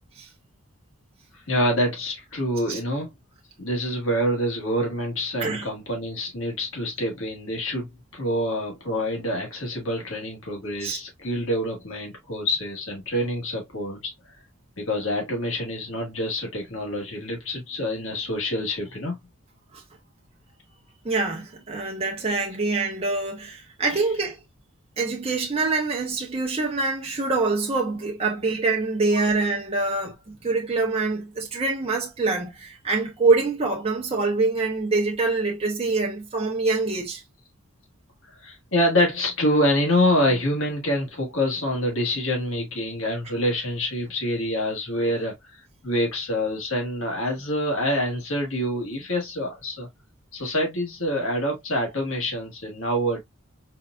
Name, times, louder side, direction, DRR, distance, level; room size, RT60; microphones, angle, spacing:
voice 1, 1.3-3.1 3.6-7.9 8.1-14.4 14.8-19.2 23.9-24.0 29.1-29.2 38.3-49.9 50.3-53.2, equal, 70° left, 1.6 m, -26 dB
voice 2, 21.0-24.4 25.0-37.2, right 3 dB, 30° right, 0.7 m, -25 dB
4.4 x 2.4 x 2.4 m
head